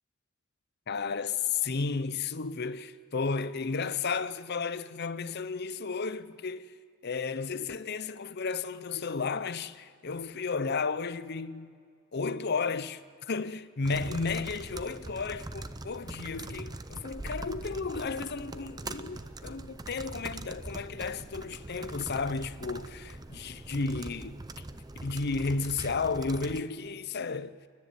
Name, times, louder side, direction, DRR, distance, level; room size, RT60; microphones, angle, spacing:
voice 1, 0.9-6.7 7.0-11.7 12.1-24.6 25.0-27.6, left 4 dB, 50° left, 0.7 m, -33 dB
sound 1, 13.8-26.6, right 2 dB, 20° right, 0.5 m, -42 dB
29.5 x 11.0 x 9.4 m
head